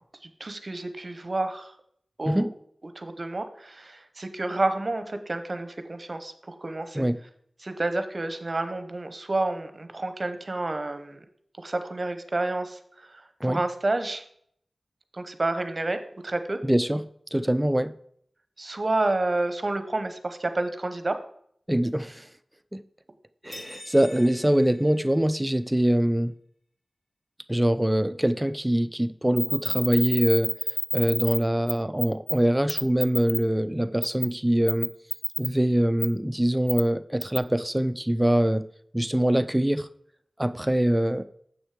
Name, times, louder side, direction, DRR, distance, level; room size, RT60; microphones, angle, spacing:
voice 1, 0.4-1.7 2.2-2.5 2.9-7.0 7.6-11.2 11.6-13.1 13.4-14.2 15.1-16.6 18.6-21.2, right 2 dB, 45° right, 9 dB, 0.9 m, -29 dB
voice 2, 16.6-17.9 21.7-22.3 22.7-22.8 23.4-26.3 27.5-30.5 30.9-34.9 35.4-38.6 38.9-39.9 40.4-41.2, right 1 dB, 10° right, 13 dB, 0.4 m, -24 dB
sound 1, 23.5-25.7, left 1 dB, 55° left, 1.5 m, -46 dB
sound 2, 29.4-31.4 31.7-31.8 32.0-32.3 32.7-33.4 34.0-34.3 34.7-35.5 36.0-36.1 36.7-36.8 37.2-37.4, left 1 dB, 30° left, 0.7 m, -27 dB
7.4 x 6.2 x 4.9 m, 0.65 s
wide cardioid pair, 70°, 0 cm